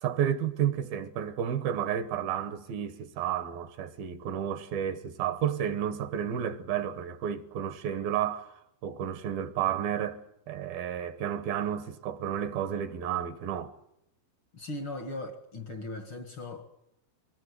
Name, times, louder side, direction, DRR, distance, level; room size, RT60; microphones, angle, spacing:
voice 1, 0.0-10.2 10.5-13.8, right 9 dB, 70° right, 2.8 m, -31 dB
voice 2, 14.5-16.6, left 2 dB, 50° left, 1.6 m, -38 dB
24.5 x 21.0 x 8.2 m
omnidirectional pair, 4.7 m